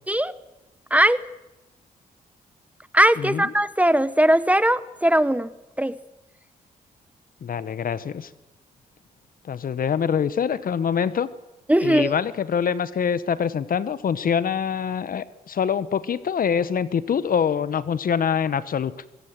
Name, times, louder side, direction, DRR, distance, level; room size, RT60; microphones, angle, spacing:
voice 1, 0.9-1.2 2.9-5.9 11.7-12.1, right 1 dB, 10° right, 16 dB, 0.9 m, -19 dB
voice 2, 3.2-3.5 7.4-8.3 9.5-11.3 11.8-18.9, left 7 dB, 60° left, 16 dB, 1.1 m, -25 dB
23.5 x 17.0 x 7.6 m, 1.0 s
cardioid pair, 60°, 16 cm